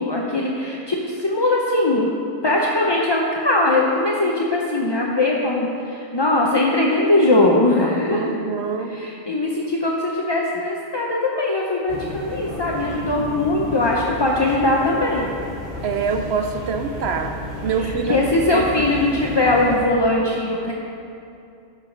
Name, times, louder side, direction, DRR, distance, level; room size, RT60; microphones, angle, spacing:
voice 1, 0.0-2.1 2.4-8.3 8.9-15.3 17.8-20.7, left 2 dB, 30° left, -2 dB, 0.5 m, -20 dB
voice 2, 8.1-8.9 15.8-17.4 17.6-18.7, right 5 dB, 65° right, 6 dB, 0.8 m, -25 dB
sound 1, 11.9-19.8, left 1 dB, 15° left, 2.4 m, -33 dB
11.5 x 5.5 x 5.1 m, 2.6 s
omnidirectional pair, 1.3 m